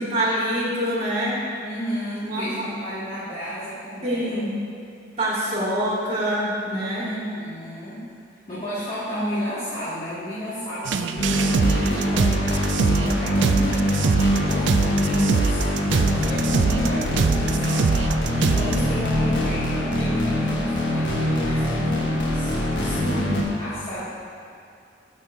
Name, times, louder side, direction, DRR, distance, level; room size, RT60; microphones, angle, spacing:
voice 1, 0.0-1.4 2.3-2.7 4.0-4.5 5.2-7.1 23.0-23.5, right 1 dB, 35° right, -6 dB, 1.8 m, -25 dB
voice 2, 1.6-4.6 7.0-8.0 8.5-14.0 14.3-18.0 18.3-23.2 23.6-24.0, equal, 30° left, -14 dB, 2.0 m, -32 dB
sound 1, 10.8-18.8, right 5 dB, 65° right, 0.3 m, -24 dB
sound 2, 11.2-23.4, equal, 65° left, 1.4 m, -23 dB
11.5 x 6.2 x 2.7 m, 2.4 s
head